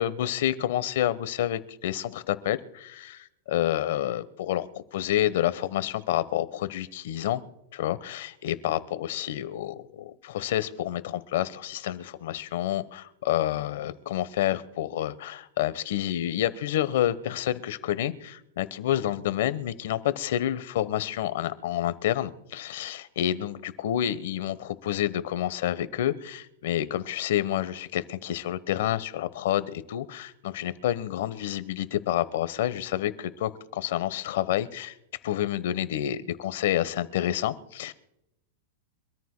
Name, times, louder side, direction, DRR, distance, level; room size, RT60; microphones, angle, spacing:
voice 1, 0.0-7.4 7.7-34.9 35.2-37.9, left 12 dB, 70° left, 15 dB, 1.0 m, -29 dB
25.0 x 13.5 x 2.2 m, 0.86 s
supercardioid pair, 155°, 0 cm